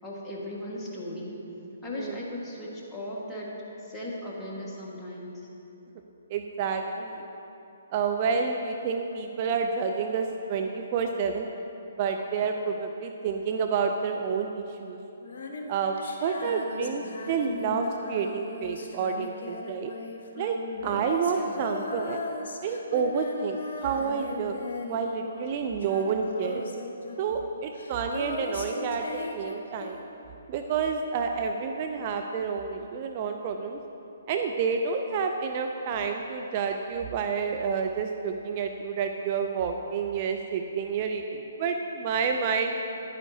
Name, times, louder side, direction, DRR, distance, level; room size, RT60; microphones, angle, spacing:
voice 1, 0.0-1.4 1.8-3.5 3.8-5.4 21.3-21.6, left 1 dB, 10° left, -5 dB, 1.6 m, -37 dB
voice 2, 6.3-7.2 7.9-11.5 12.0-15.0 15.7-19.9 20.4-20.6 20.8-22.2 22.6-24.6 24.9-26.6 27.2-30.0 30.5-33.8 34.3-42.7, right 5 dB, 40° right, 4 dB, 0.4 m, -29 dB
Female singing, 15.2-25.5 25.8-30.3, left 3 dB, 55° left, 1.0 m, -38 dB
10.5 x 9.2 x 2.8 m, 3.0 s
figure-of-eight pair, 135°, 0 cm